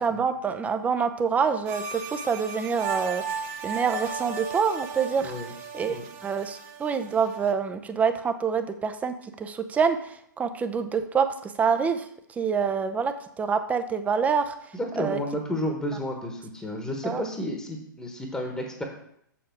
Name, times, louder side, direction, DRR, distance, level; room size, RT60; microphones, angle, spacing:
voice 1, 0.0-5.3 5.7-6.0 6.2-12.1 12.4-14.5 15.0-15.2 17.0-17.2, right 6 dB, 15° right, 8 dB, 0.7 m, -26 dB
sound 1, 1.7-7.5, right 5 dB, 45° right, 0.9 m, -36 dB
voice 2, 14.7-18.8, equal, 5° left, 2 dB, 1.3 m, -32 dB
7.3 x 7.2 x 4.6 m, 0.69 s
figure-of-eight pair, 110°, 11 cm